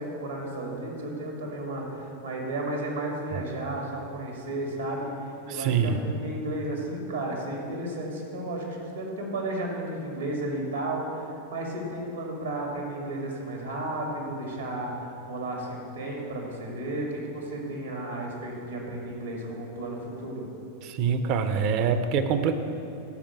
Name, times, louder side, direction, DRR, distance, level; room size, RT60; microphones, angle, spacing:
voice 1, 0.0-20.5, right 1 dB, 75° right, 0 dB, 2.3 m, -33 dB
voice 2, 5.5-6.0 20.8-22.6, right 6 dB, 40° right, 9 dB, 0.7 m, -25 dB
13.0 x 5.1 x 6.7 m, 2.9 s
figure-of-eight pair, 90°, 0 cm